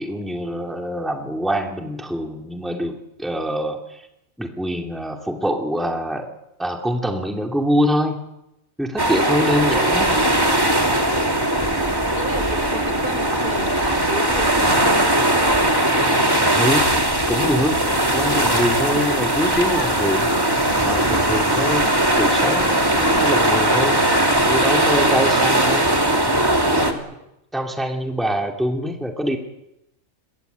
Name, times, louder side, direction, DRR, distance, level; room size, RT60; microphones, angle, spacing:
voice 1, 0.0-4.1 4.4-6.3 6.6-8.2 8.8-10.1 16.5-16.9 17.3-17.8 18.1-20.3 20.8-24.0 24.5-25.8 26.6-27.0 27.5-29.4, equal, ahead, 2 dB, 2.4 m, -24 dB
sound 1, 9.0-26.9, right 1 dB, 20° right, 2.7 m, -19 dB
voice 2, 12.1-15.3, right 1 dB, 45° right, 8 dB, 4.4 m, -32 dB
29.5 x 22.0 x 8.2 m, 0.89 s
omnidirectional pair, 1.3 m